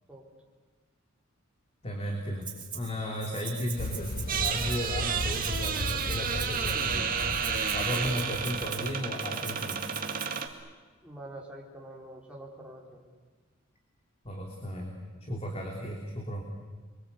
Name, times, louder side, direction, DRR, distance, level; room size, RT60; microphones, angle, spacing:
voice 1, 1.8-7.1 7.7-9.8 14.2-16.4, equal, 30° left, 1 dB, 3.2 m, -35 dB
Rattle (instrument), 2.4-2.9 3.2-10.4, right 8 dB, 25° right, 4.8 m, -42 dB
sound 1, 3.7-9.0, left 2 dB, 45° left, 0.8 m, -37 dB
sound 2, 4.3-10.5, right 6 dB, 45° right, 2.3 m, -31 dB
voice 2, 11.0-13.1, right 1 dB, 5° right, -3 dB, 4.6 m, -45 dB
29.5 x 23.0 x 8.5 m, 1.4 s
head